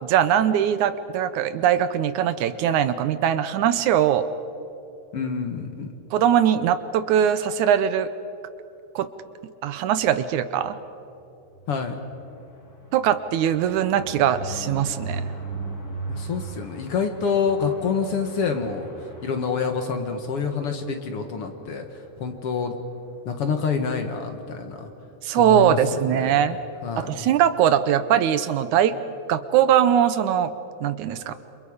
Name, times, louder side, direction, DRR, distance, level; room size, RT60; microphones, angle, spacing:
voice 1, 0.0-4.3 6.1-8.1 9.0-9.1 9.6-10.8 12.9-15.2 25.2-26.6 27.0-29.0 29.3-30.5 30.8-31.3, right 9 dB, 80° right, 12 dB, 2.1 m, -21 dB
voice 2, 5.1-5.9 11.7-12.0 16.1-22.8 23.3-24.9 25.4-26.6 26.8-27.3, left 5 dB, 55° left, 5 dB, 2.1 m, -27 dB
sound 1, 11.5-20.3 20.7-20.9 21.2-21.3 21.5-21.8, right 3 dB, 30° left, 3.0 m, -38 dB
28.5 x 27.0 x 5.0 m, 2.8 s
omnidirectional pair, 3.6 m